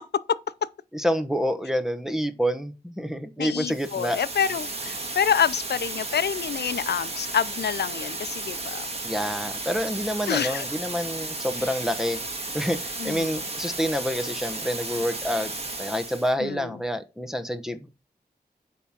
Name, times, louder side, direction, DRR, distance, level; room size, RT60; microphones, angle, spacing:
voice 1, 0.9-4.2 9.0-12.2 12.5-15.5 15.8-17.9, equal, 5° right, 1.0 m, -28 dB
voice 2, 3.4-8.9 10.3-10.7 13.0-13.4 16.4-16.7, left 8 dB, 80° left, 0.5 m, -27 dB
sound 1, 3.7-16.3, right 2 dB, 35° right, 1.9 m, -34 dB
9.1 x 3.6 x 5.8 m
wide cardioid pair, 100°, 17 cm